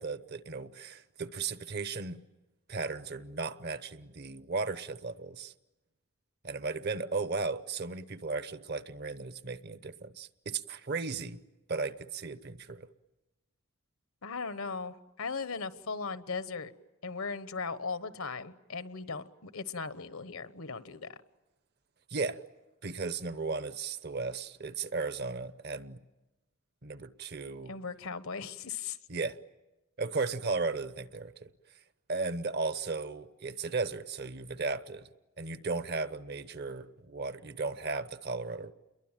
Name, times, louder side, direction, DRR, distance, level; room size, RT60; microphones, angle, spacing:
voice 1, 0.0-2.2 2.7-5.5 6.4-11.4 11.7-12.9 22.1-22.4 22.8-26.0 26.8-27.7 29.1-29.4 30.0-31.5 32.1-35.1 35.4-38.7, right 4 dB, 50° right, 0.9 m, -35 dB
voice 2, 14.2-16.7 17.0-21.1 27.7-29.0, left 4 dB, 75° left, 1.2 m, -38 dB
29.5 x 22.5 x 9.0 m
head